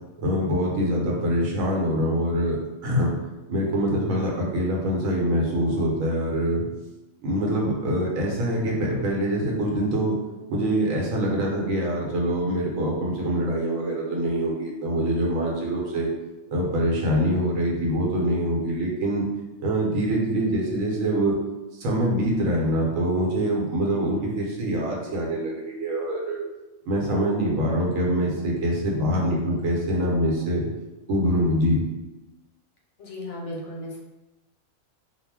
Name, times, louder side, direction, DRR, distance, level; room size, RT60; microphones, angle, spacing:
voice 1, 0.2-2.6 2.8-3.1 3.5-6.6 7.2-10.2 10.5-16.1 16.5-19.2 19.6-21.4 21.7-26.4 26.9-30.7 31.1-31.8, equal, 75° right, -1 dB, 1.0 m, -24 dB
voice 2, 33.0-34.0, left 1 dB, 65° left, -3 dB, 0.8 m, -35 dB
2.3 x 2.1 x 3.3 m, 1.1 s
omnidirectional pair, 1.4 m